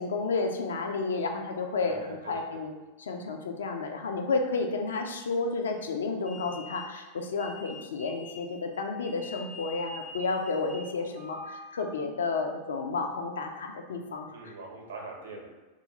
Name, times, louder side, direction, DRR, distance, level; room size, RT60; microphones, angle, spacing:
voice 1, 0.0-2.7 3.0-14.5, left 3 dB, 65° left, 4 dB, 0.3 m, -31 dB
voice 2, 1.8-2.6 14.3-15.5, right 3 dB, 65° right, 0 dB, 0.6 m, -43 dB
sound 1, 6.2-12.2, left 2 dB, 10° right, 0.4 m, -46 dB
2.4 x 2.3 x 2.8 m, 1.2 s
figure-of-eight pair, 90°, 0 cm